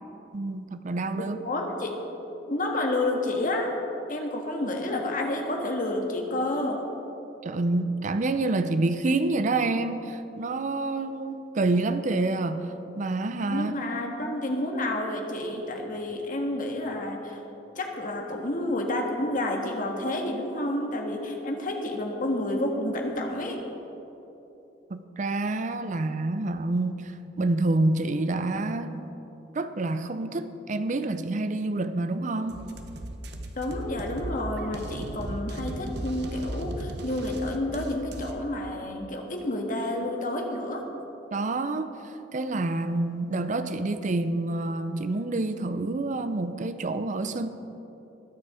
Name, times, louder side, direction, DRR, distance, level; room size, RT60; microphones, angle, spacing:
voice 1, 0.3-1.4 7.4-12.7 13.0-13.7 24.9-27.1 27.4-29.1 29.5-32.6 41.3-41.9 42.3-47.5, right 2 dB, 45° right, 10 dB, 0.5 m, -27 dB
voice 2, 1.2-2.0 2.5-3.7 4.1-6.8 13.5-17.4 17.7-23.6 33.5-40.8, left 1 dB, 45° left, 2 dB, 1.6 m, -30 dB
sound 1, 32.5-38.3, right 1 dB, 65° right, 1.0 m, -36 dB
20.0 x 7.0 x 4.9 m, 3.0 s
head